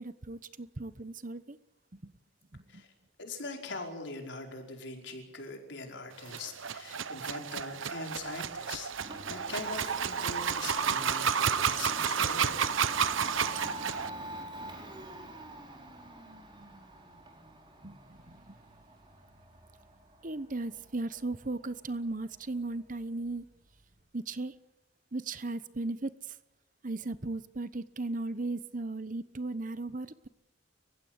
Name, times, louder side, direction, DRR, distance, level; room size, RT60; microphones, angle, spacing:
voice 1, 0.0-1.6 1.9-2.1 2.5-2.8 17.8-18.6 20.2-23.5 24.1-24.5 25.1-26.4 26.8-30.3, right 2 dB, 40° right, 14 dB, 1.0 m, -37 dB
voice 2, 3.2-12.9, left 3 dB, 65° left, 3 dB, 5.1 m, -42 dB
sound 1, 6.2-14.1, right 7 dB, 80° right, 0.9 m, -31 dB
Domestic sounds home sounds, 8.2-24.0, right 1 dB, 25° right, 4.6 m, -46 dB
30.0 x 16.0 x 8.2 m, 0.96 s
head